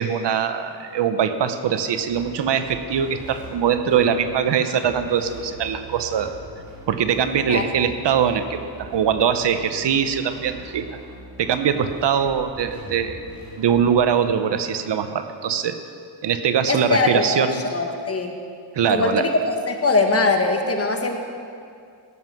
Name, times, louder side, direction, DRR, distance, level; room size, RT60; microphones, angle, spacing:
voice 1, 0.0-6.4 6.9-11.0 11.4-13.2 13.6-15.8 16.2-17.7 18.7-19.2, right 8 dB, 65° right, 9 dB, 0.9 m, -22 dB
sound 1, 2.1-14.0, right 1 dB, 40° right, 3.7 m, -41 dB
voice 2, 16.7-18.3 18.9-19.4 19.6-21.2, left 3 dB, 30° left, 4 dB, 1.4 m, -21 dB
16.5 x 7.8 x 6.1 m, 2.3 s
cardioid pair, 110°, 45 cm